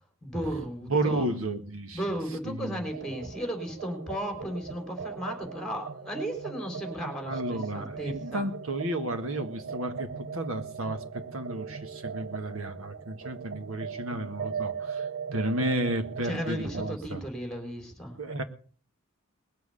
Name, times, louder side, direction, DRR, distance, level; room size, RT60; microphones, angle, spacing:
voice 1, 0.2-1.3 1.9-8.5 16.2-18.2, right 1 dB, 5° left, 4 dB, 3.6 m, -35 dB
voice 2, 0.9-2.0 2.5-2.8 7.2-10.1 10.3-11.0 11.3-17.2 18.2-18.4, right 1 dB, 75° right, 7 dB, 1.8 m, -32 dB
sound 1, 2.9-17.0, right 6 dB, 60° right, 0.7 m, -39 dB
20.0 x 7.7 x 6.7 m, 0.43 s
head